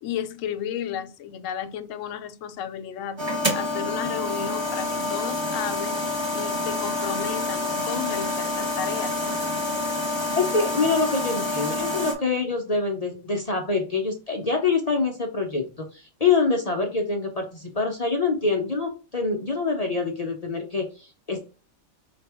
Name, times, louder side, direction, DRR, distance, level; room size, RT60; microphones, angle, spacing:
voice 1, 0.0-3.2 3.5-6.0 6.3-9.2, left 9 dB, 75° left, 0.9 m, -33 dB
sound 1, 3.2-12.1, left 2 dB, 20° right, 1.0 m, -27 dB
voice 2, 10.4-21.4, left 4 dB, 45° left, 0.5 m, -25 dB
4.9 x 2.9 x 3.4 m
omnidirectional pair, 1.4 m